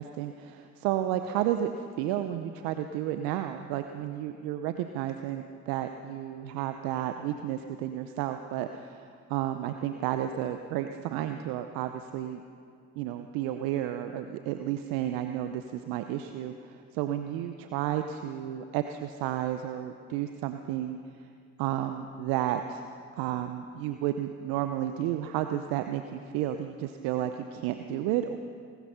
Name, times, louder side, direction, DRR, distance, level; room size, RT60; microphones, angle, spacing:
voice 1, 0.0-12.4 13.0-21.0 21.6-22.8 23.2-28.4, right 11 dB, 70° right, 8 dB, 0.8 m, -32 dB
19.0 x 13.0 x 5.7 m, 2.2 s
hypercardioid pair, 55°, 37 cm